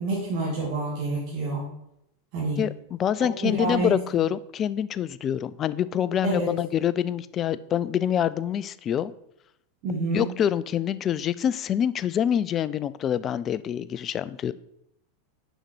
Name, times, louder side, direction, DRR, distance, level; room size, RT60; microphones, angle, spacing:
voice 1, 0.0-1.6 2.3-2.6 3.4-3.9 6.2-6.5 9.8-10.3, right 2 dB, 50° right, -6 dB, 2.3 m, -27 dB
voice 2, 2.6-9.1 10.1-14.5, left 9 dB, 35° left, 16 dB, 0.3 m, -26 dB
6.4 x 5.2 x 4.5 m, 0.78 s
figure-of-eight pair, 90°, 0 cm